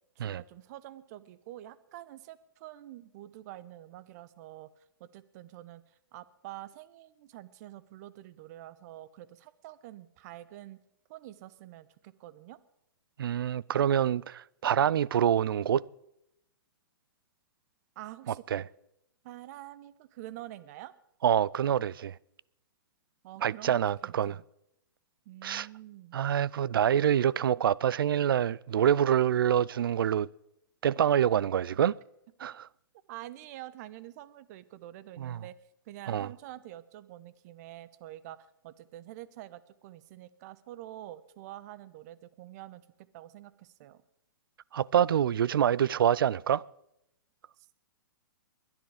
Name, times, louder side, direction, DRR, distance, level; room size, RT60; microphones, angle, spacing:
voice 1, 0.2-10.8 11.1-12.6 17.9-18.6 19.2-20.9 23.2-24.4 25.2-26.2 32.4-32.5 33.1-35.5 35.8-42.9 43.1-44.0 47.6-47.8, right 14 dB, 45° right, 1.0 m, -47 dB
voice 2, 13.2-15.8 18.5-18.6 21.2-22.2 23.4-24.4 25.4-25.7 26.1-30.3 30.8-32.0 32.4-32.6 35.2-35.4 36.1-36.3 44.7-46.6, right 9 dB, 75° right, 0.5 m, -26 dB
21.5 x 10.5 x 5.0 m
hypercardioid pair, 120°, 12 cm